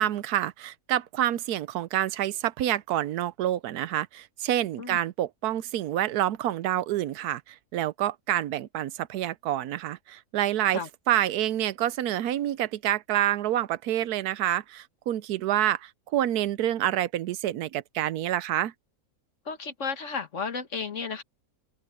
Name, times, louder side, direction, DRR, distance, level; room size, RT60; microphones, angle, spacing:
voice 1, 0.0-18.7, right 12 dB, 90° right, 1.2 m, -28 dB
voice 2, 19.5-21.2, left 5 dB, 55° left, 1.8 m, -33 dB
omnidirectional pair, 1.6 m